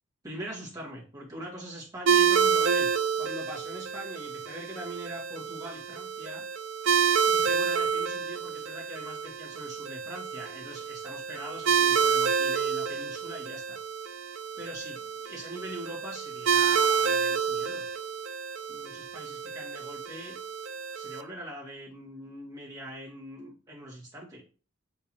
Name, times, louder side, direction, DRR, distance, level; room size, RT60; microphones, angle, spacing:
voice 1, 0.2-2.9 3.2-6.5 7.3-13.8 14.6-17.8 18.7-20.4 20.9-24.4, right 1 dB, 15° right, -5 dB, 1.7 m, -42 dB
sound 1, 2.1-21.2, right 6 dB, 65° right, 0.4 m, -28 dB
4.4 x 3.8 x 2.8 m, 0.36 s
head